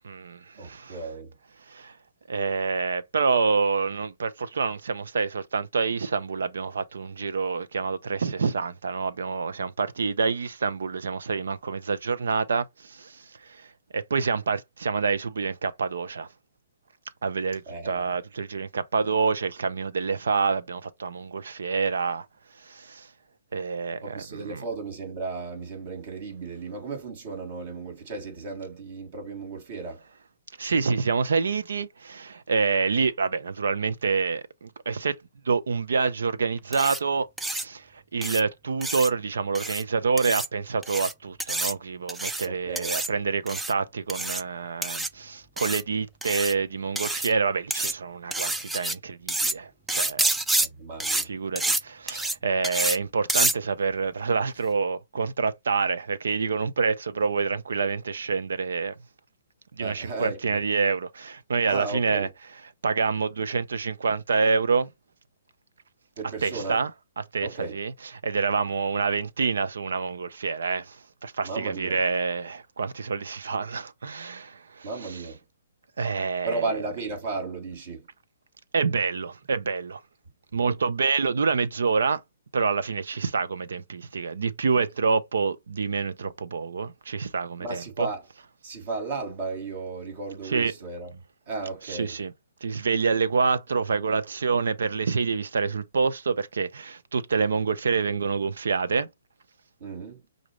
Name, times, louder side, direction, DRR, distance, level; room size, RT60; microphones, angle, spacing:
voice 1, 0.0-1.0 1.7-2.0 2.3-16.3 17.2-22.3 22.6-23.1 23.5-24.6 30.6-35.1 35.4-50.3 51.2-58.9 59.7-62.3 62.8-64.9 66.4-66.9 67.2-67.9 68.2-75.2 76.0-76.8 78.7-80.0 80.5-82.2 82.5-88.1 90.4-90.7 91.8-92.3 92.6-99.1, right 5 dB, 85° right, 0.7 m, -27 dB
voice 2, 0.6-1.3 17.7-18.1 24.0-30.0 42.4-42.9 50.6-51.3 59.8-60.6 61.7-62.3 66.2-66.8 67.4-67.8 71.4-72.0 74.8-75.4 76.4-78.1 87.6-88.2 88.6-91.2 91.5-92.2 99.8-100.2, right 3 dB, 50° right, 3.0 m, -35 dB
sound 1, 36.7-37.0 37.4-37.6 38.2-38.4 38.8-39.1 39.5-39.8 40.2-40.5 40.8-41.1 41.4-41.7 42.1-42.5 42.8-43.1 43.5-43.7 44.1-44.4 44.8-45.1 45.6-45.8 46.2-46.5 47.0-47.3 47.7-47.9 48.3-48.9 49.3-49.5 49.9-50.7 51.0-51.2 51.6-51.8 52.1-52.4 52.6-53.0 53.3-53.5, right 2 dB, 5° right, 0.3 m, -27 dB
6.0 x 2.6 x 3.1 m
hypercardioid pair, 155°, 0 cm